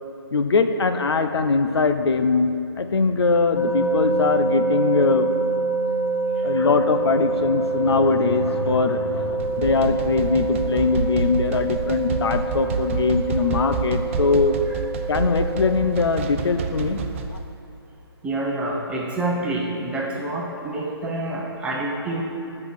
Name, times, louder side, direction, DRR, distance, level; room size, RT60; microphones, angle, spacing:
voice 1, 0.3-5.3 6.4-14.6 15.1-17.0 17.3-17.4, left 4 dB, 75° left, 8 dB, 0.6 m, -21 dB
sound 1, 3.6-15.9, right 3 dB, 45° left, 1.6 m, -26 dB
sound 2, 9.2-17.4, right 4 dB, 30° right, 0.5 m, -29 dB
voice 2, 18.2-22.2, right 2 dB, 10° right, -3 dB, 0.8 m, -27 dB
8.3 x 5.4 x 6.2 m, 2.7 s
hypercardioid pair, 155°, 14 cm